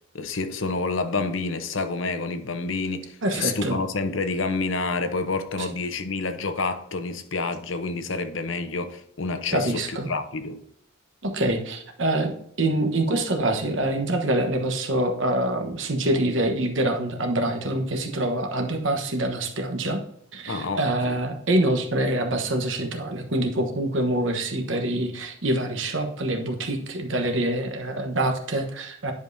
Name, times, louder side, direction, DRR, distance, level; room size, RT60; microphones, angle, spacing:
voice 1, 0.1-10.6 20.5-21.2, left 3 dB, 70° left, 0.8 m, -28 dB
voice 2, 3.2-3.8 5.6-5.7 9.5-10.1 11.2-20.0 20.3-29.1, right 1 dB, 65° right, 1.2 m, -25 dB
10.0 x 5.2 x 2.7 m
head